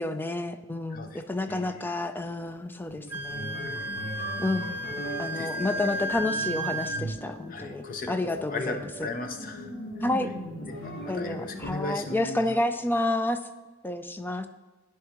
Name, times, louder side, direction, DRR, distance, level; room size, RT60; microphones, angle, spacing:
voice 1, 0.0-3.7 4.4-4.8 5.2-9.1 10.0-10.3 11.1-13.4 13.8-14.5, left 2 dB, 10° left, 9 dB, 0.3 m, -30 dB
voice 2, 1.5-1.8 3.6-4.3 5.3-5.8 7.5-9.7 10.7-12.6, left 2 dB, 45° left, 6 dB, 0.6 m, -37 dB
sound 1, 2.8-12.1, right 1 dB, 85° left, 2.0 m, -39 dB
Wind instrument woodwind instrument, 3.1-7.0, right 1 dB, 10° right, 0.8 m, -33 dB
10.5 x 4.6 x 3.0 m, 1.2 s
head